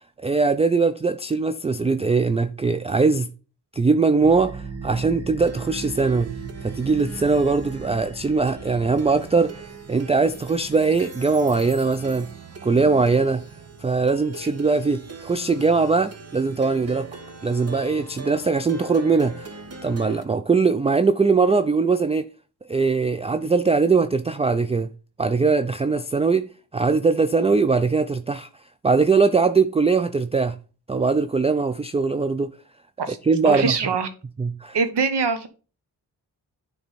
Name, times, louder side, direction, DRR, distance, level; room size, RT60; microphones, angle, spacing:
voice 1, 0.2-3.3 3.7-6.3 6.6-12.3 12.6-13.4 13.8-17.1 17.4-22.3 22.7-24.9 25.2-28.5 28.8-30.6 30.9-32.5 33.1-33.8 34.4-34.8, right 4 dB, 15° right, 0.3 m, -21 dB
Plucked string instrument, 4.2-20.2, right 4 dB, 35° right, 1.1 m, -38 dB
voice 2, 33.4-34.1 34.7-35.5, right 5 dB, 75° right, 1.2 m, -22 dB
9.5 x 3.5 x 4.1 m
cardioid pair, 70°, 41 cm